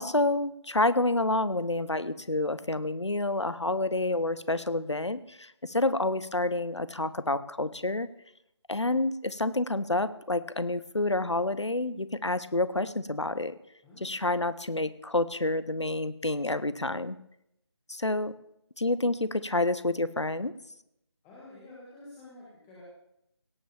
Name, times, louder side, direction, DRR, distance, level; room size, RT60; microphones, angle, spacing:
voice 1, 0.0-8.1 8.7-13.6 14.0-17.2 17.9-18.3 18.8-20.5, left 2 dB, 80° left, 16 dB, 1.0 m, -28 dB
voice 2, 13.8-14.3 21.2-22.8, left 2 dB, 10° left, -7 dB, 1.8 m, -50 dB
17.5 x 7.2 x 7.0 m, 0.79 s
figure-of-eight pair, 160°, 15 cm